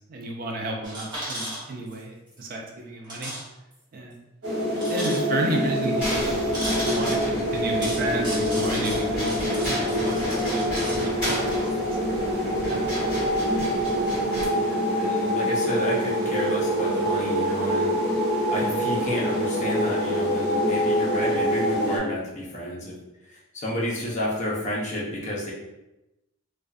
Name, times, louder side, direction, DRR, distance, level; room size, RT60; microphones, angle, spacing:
voice 1, 0.1-3.3 3.9-4.1 4.9-6.4 6.9-10.4 10.6-11.1 11.4-11.6 11.8-12.9, right 1 dB, 45° right, 1 dB, 0.3 m, -32 dB
sound 1, 0.8-2.0 2.3-2.4 3.0-3.4 3.7-3.8 4.8-5.5 6.5-7.2 7.8-11.4, right 1 dB, 20° right, 0.8 m, -35 dB
sound 2, 4.4-22.0, equal, 90° right, 0.9 m, -25 dB
sound 3, 6.0-14.5, equal, 5° right, 1.5 m, -33 dB
voice 2, 14.5-22.9 23.2-25.5, equal, 35° left, -4 dB, 0.6 m, -31 dB
2.4 x 2.2 x 2.4 m, 0.95 s
head